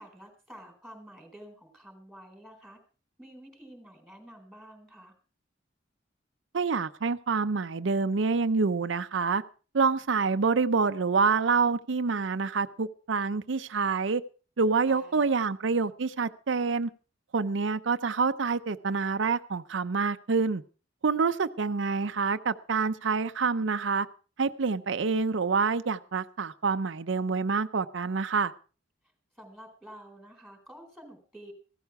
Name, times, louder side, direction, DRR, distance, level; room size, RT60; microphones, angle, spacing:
voice 1, 0.0-2.8 3.2-5.1 14.9-15.5 29.4-31.5, equal, ahead, 4 dB, 4.0 m, -49 dB
voice 2, 6.5-9.4 9.7-14.2 14.6-16.9 17.3-20.6 21.0-24.1 24.4-28.5, right 4 dB, 85° right, 10 dB, 0.6 m, -27 dB
15.5 x 13.0 x 4.7 m, 0.38 s
head